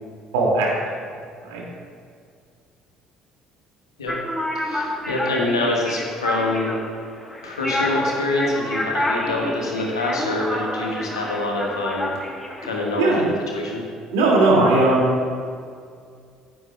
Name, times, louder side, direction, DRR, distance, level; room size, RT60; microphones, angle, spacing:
voice 1, 0.3-0.7 1.4-1.6 13.0-13.2 14.1-15.3, right 2 dB, 65° right, -3 dB, 2.3 m, -18 dB
sound 1, 4.1-13.2, left 1 dB, 10° left, 1.2 m, -28 dB
voice 2, 4.5-6.7 7.4-12.1 12.6-13.8, left 2 dB, 80° left, -2 dB, 1.4 m, -25 dB
15.0 x 7.7 x 2.3 m, 2.2 s
figure-of-eight pair, 55°, 3 cm